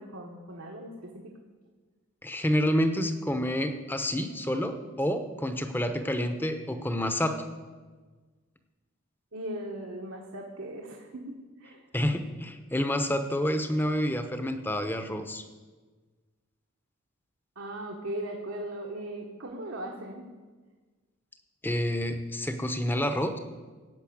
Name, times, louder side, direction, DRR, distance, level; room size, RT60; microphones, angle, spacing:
voice 1, 0.0-1.3 9.3-11.9 17.5-20.3, right 1 dB, 75° right, 0 dB, 1.3 m, -38 dB
voice 2, 2.2-7.4 11.9-15.4 21.6-23.4, equal, 10° left, 7 dB, 0.8 m, -28 dB
16.0 x 5.6 x 8.7 m, 1.4 s
head